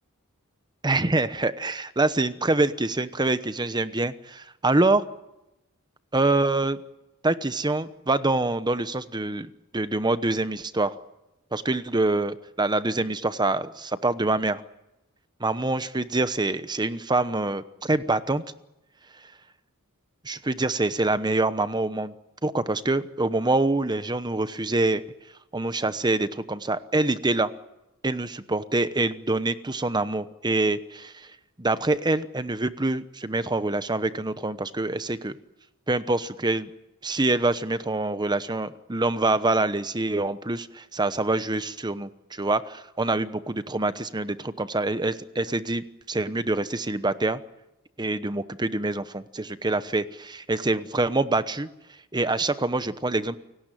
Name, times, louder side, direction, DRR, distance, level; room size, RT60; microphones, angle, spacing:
voice 1, 0.8-5.0 6.1-6.8 7.2-11.0 11.5-14.6 15.4-18.4 20.2-22.1 22.4-25.0 25.5-27.5 28.0-31.3 31.6-35.4 35.9-36.7 37.0-47.4 48.0-51.7 52.1-53.4, right 2 dB, 20° right, 12 dB, 1.0 m, -25 dB
29.5 x 18.0 x 9.2 m, 0.94 s
head